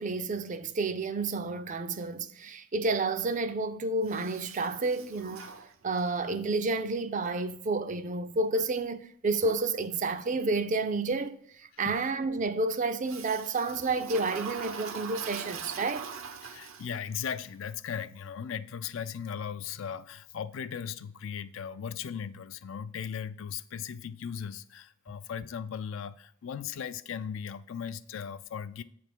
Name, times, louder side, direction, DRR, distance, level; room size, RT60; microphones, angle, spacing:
voice 1, 0.0-5.5 5.8-16.1, right 3 dB, 35° right, 0.4 m, -30 dB
Toilet flush, 4.0-6.3 13.0-17.2, right 6 dB, 80° right, 0.8 m, -42 dB
voice 2, 16.4-28.8, left 7 dB, 70° left, 0.4 m, -37 dB
7.9 x 3.4 x 6.0 m
head